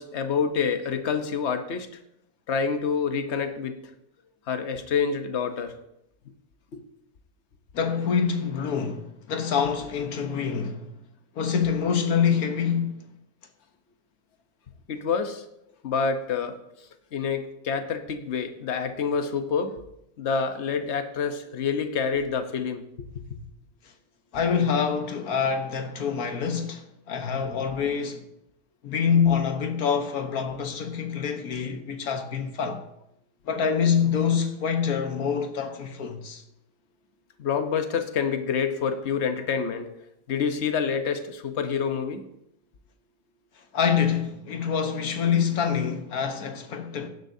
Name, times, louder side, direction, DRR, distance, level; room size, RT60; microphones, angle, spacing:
voice 1, 0.0-1.9 2.5-3.8 4.5-5.7 6.7-6.8 14.9-15.4 15.8-16.6 17.1-19.8 20.2-23.1 37.4-39.9 40.3-42.2, left 6 dB, 50° left, 1.1 m, -27 dB
voice 2, 7.7-10.9 11.3-13.1 24.3-28.3 28.8-32.8 33.4-36.4 43.7-47.1, left 7 dB, 65° left, 1.5 m, -26 dB
16.5 x 10.5 x 2.7 m
omnidirectional pair, 1.7 m